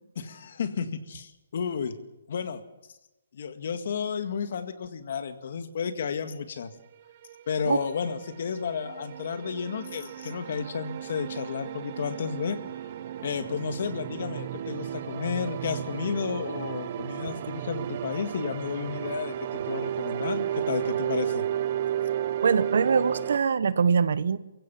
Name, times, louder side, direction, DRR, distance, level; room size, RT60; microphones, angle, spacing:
voice 1, 0.2-2.0 2.3-2.6 3.3-6.7 7.5-12.6 13.2-21.4, left 6 dB, 50° left, 9 dB, 1.9 m, -32 dB
sound 1, 7.2-23.4, right 11 dB, 35° right, 1.0 m, -33 dB
voice 2, 22.4-24.4, right 6 dB, 60° right, 15 dB, 1.0 m, -23 dB
23.5 x 16.0 x 7.4 m, 0.97 s
hypercardioid pair, 165°, 0 cm